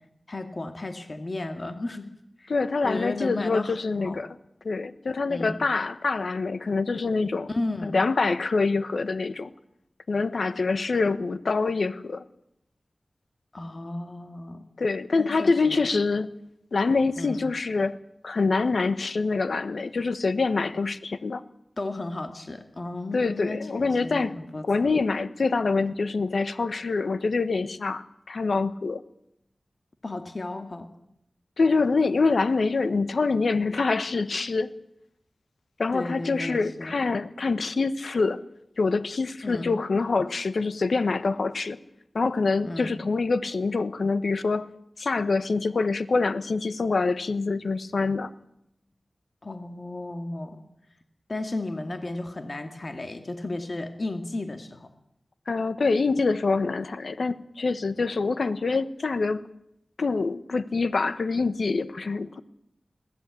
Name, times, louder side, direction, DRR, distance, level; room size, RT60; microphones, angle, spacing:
voice 1, 0.3-2.1 2.4-2.5 2.8-4.2 5.3-5.6 7.5-8.0 13.5-14.6 15.2-15.9 17.2-17.4 21.8-24.9 30.0-30.9 35.9-37.0 39.4-39.8 42.6-43.0 49.4-50.6 51.3-54.9, left 2 dB, 45° left, 6 dB, 2.1 m, -34 dB
voice 2, 2.5-4.4 4.6-7.5 7.8-9.5 10.1-12.2 14.8-16.3 16.7-18.0 18.2-21.4 23.1-24.3 24.6-29.0 31.6-34.7 35.8-38.4 38.8-41.8 42.1-44.6 45.0-48.3 55.5-59.4 60.0-62.4, left 4 dB, 80° left, 12 dB, 1.2 m, -25 dB
21.5 x 17.0 x 8.5 m, 0.80 s
wide cardioid pair, 85°, 0 cm